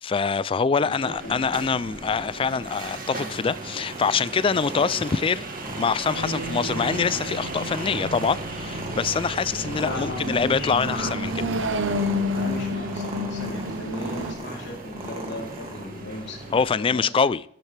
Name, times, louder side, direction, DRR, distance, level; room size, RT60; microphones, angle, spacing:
voice 1, 0.0-5.4 5.8-11.3 16.5-17.4, left 5 dB, 30° left, 0.3 m, -24 dB
voice 2, 0.8-1.4 9.8-11.1 11.4-11.5 12.3-17.1, left 1 dB, 65° left, 3.6 m, -36 dB
sound 1, 1.0-16.7, right 2 dB, 45° right, 2.1 m, -37 dB
Purr, 2.6-16.6, right 1 dB, 30° right, 2.2 m, -39 dB
sound 2, 6.1-14.3, left 1 dB, 85° right, 0.9 m, -31 dB
12.5 x 11.5 x 3.3 m
head